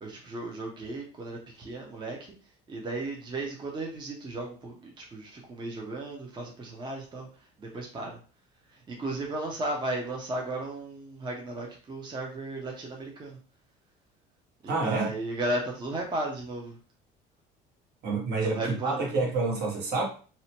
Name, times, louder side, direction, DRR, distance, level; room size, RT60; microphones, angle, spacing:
voice 1, 0.0-2.3 2.7-7.3 7.6-8.2 8.7-13.4 14.6-16.7 18.4-19.1, right 2 dB, 25° right, 0 dB, 0.6 m, -35 dB
voice 2, 14.7-15.1 18.0-20.1, right 3 dB, 60° right, -1 dB, 1.1 m, -28 dB
2.7 x 2.1 x 2.8 m, 0.39 s
cardioid pair, 105°, 19 cm